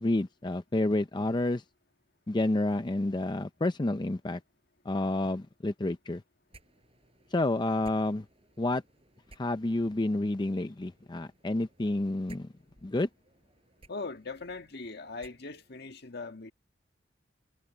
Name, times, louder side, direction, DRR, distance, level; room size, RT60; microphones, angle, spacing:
voice 1, 0.0-1.6 2.3-4.4 4.9-6.2 7.3-8.2 8.6-8.8 9.4-12.5 12.8-13.1, left 2 dB, 25° left, 0.5 m, -29 dB
sound 1, 6.5-15.9, right 2 dB, 30° right, 7.8 m, -60 dB
voice 2, 13.9-16.5, left 3 dB, 60° left, 1.7 m, -40 dB
head